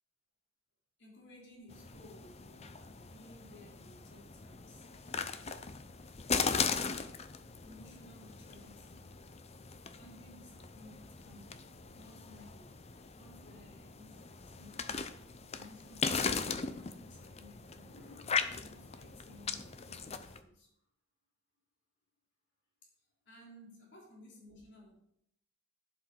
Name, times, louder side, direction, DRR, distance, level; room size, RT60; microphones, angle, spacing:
voice 1, 1.0-4.8 7.6-9.2 10.0-12.8 13.1-14.9 15.5-20.7 23.2-25.0, left 1 dB, 55° left, -2 dB, 3.4 m, -57 dB
sound 1, 1.7-20.4, left 5 dB, 30° left, 0.6 m, -39 dB
11.0 x 7.7 x 4.5 m, 0.72 s
head